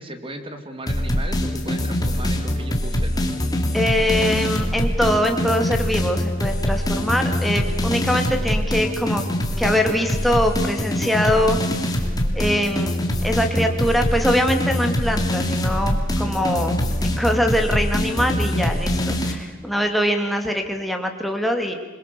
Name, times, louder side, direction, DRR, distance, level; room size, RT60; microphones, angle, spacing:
voice 1, 0.0-3.2 16.2-16.4, right 1 dB, 30° right, 7 dB, 2.4 m, -35 dB
sound 1, 0.9-19.3, left 1 dB, 20° left, 2.9 m, -23 dB
voice 2, 3.7-9.2 9.6-11.6 12.3-13.0 13.2-16.8 17.0-21.8, equal, ahead, 3 dB, 2.5 m, -22 dB
28.0 x 22.5 x 7.0 m, 1.3 s
head